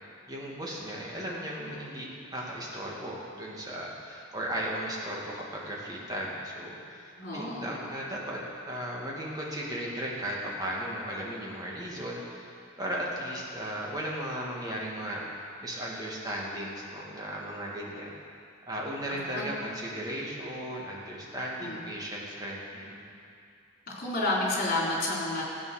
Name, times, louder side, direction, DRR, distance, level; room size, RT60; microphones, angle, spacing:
voice 1, 0.3-8.4 8.7-12.5 12.8-15.2 15.6-18.1 18.7-23.0, equal, 20° right, -4 dB, 2.5 m, -36 dB
voice 2, 7.2-7.7 19.1-19.5 21.6-21.8 24.0-25.4, left 2 dB, 50° left, -4 dB, 3.7 m, -30 dB
15.5 x 9.0 x 6.7 m, 2.4 s
head